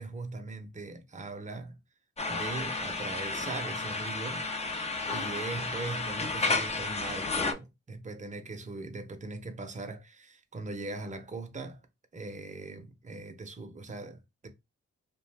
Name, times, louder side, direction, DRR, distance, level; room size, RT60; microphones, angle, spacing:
voice 1, 0.0-1.8 2.3-4.5 5.1-11.8 12.1-14.5, right 3 dB, 25° right, 0.7 m, -40 dB
sound 1, 2.2-7.5, left 3 dB, 20° left, 0.5 m, -32 dB
2.5 x 2.2 x 3.2 m
cardioid pair, 55°, 29 cm